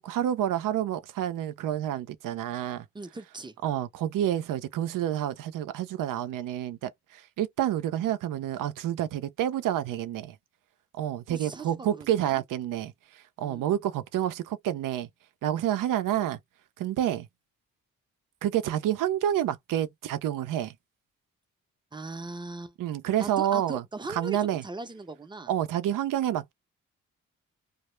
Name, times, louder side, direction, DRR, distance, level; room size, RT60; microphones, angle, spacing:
voice 1, 0.0-2.9 3.6-10.4 10.9-15.1 15.4-16.4 16.8-17.3 18.4-20.7 22.8-23.8 24.1-24.6 25.5-26.5, right 11 dB, 75° right, 0.5 m, -29 dB
voice 2, 2.9-3.5 11.3-12.4 13.4-13.7 21.9-22.7 23.2-25.5, right 3 dB, 15° right, 0.5 m, -39 dB
2.0 x 2.0 x 3.1 m
cardioid pair, 65°, 32 cm